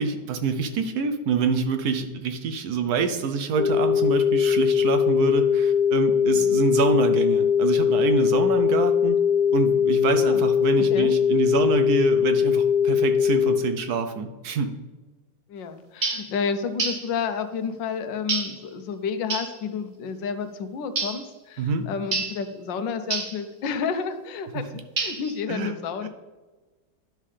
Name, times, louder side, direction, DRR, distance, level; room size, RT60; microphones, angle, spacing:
voice 1, 0.0-9.2 9.5-14.7 21.6-21.9 25.5-25.7 26.0-26.1, right 5 dB, 70° right, 7 dB, 1.0 m, -26 dB
sound 1, 3.6-13.6, left 7 dB, 55° left, 0.9 m, -21 dB
voice 2, 15.5-26.1, left 6 dB, 85° left, 9 dB, 1.4 m, -30 dB
sound 2, 16.0-16.3 16.8-17.1 18.3-18.6 19.3-19.6 21.0-21.3 22.1-22.4 23.1-23.4 25.0-25.4, right 4 dB, 40° right, 0.7 m, -28 dB
10.5 x 5.5 x 3.3 m, 1.2 s
omnidirectional pair, 2.0 m